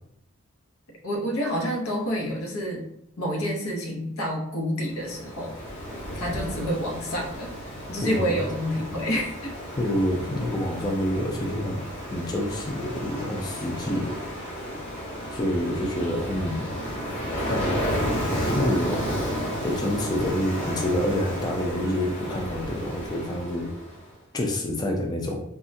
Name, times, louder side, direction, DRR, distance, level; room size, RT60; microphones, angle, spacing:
voice 1, 1.0-2.8 3.2-5.6 6.1-7.5 7.9-9.5, equal, 85° left, 0 dB, 0.8 m, -28 dB
Ocean, 4.9-24.0, equal, 60° left, 1.1 m, -32 dB
voice 2, 8.0-8.5 9.8-14.2 15.3-16.7 17.5-17.8 18.3-23.7 24.3-25.4, left 1 dB, 20° left, 0 dB, 0.3 m, -28 dB
3.5 x 2.1 x 2.6 m, 0.73 s
head